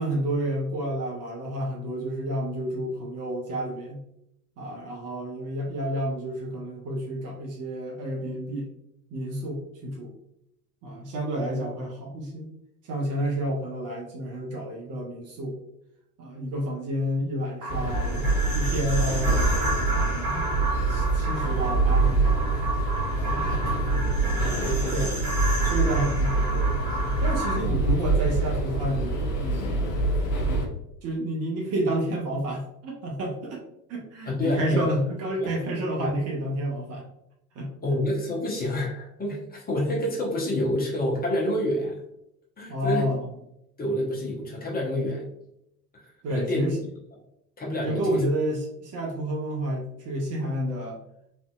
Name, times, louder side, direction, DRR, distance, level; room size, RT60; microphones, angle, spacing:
voice 1, 0.0-4.0 4.6-8.7 9.1-10.1 10.8-12.5 12.8-15.6 16.2-18.3 18.5-19.5 19.9-20.5 20.9-22.6 24.9-25.1 25.7-26.7 27.2-29.9 31.0-33.6 33.9-37.0 37.6-37.7 42.7-43.2 46.2-46.8 47.8-51.0, right 1 dB, 35° right, 0 dB, 0.6 m, -30 dB
sound 1, 17.6-27.6, right 1 dB, 70° right, 1.2 m, -32 dB
sound 2, 17.7-30.7, right 3 dB, 60° left, 0.8 m, -25 dB
voice 2, 23.2-25.3 25.6-25.7 34.3-34.8 35.4-35.5 36.0-36.1 37.8-42.0 42.6-43.1 43.8-45.2 46.0-46.7 47.6-48.2, left 1 dB, 20° left, -2 dB, 0.8 m, -29 dB
3.3 x 2.6 x 2.3 m, 0.79 s
figure-of-eight pair, 65°, 47 cm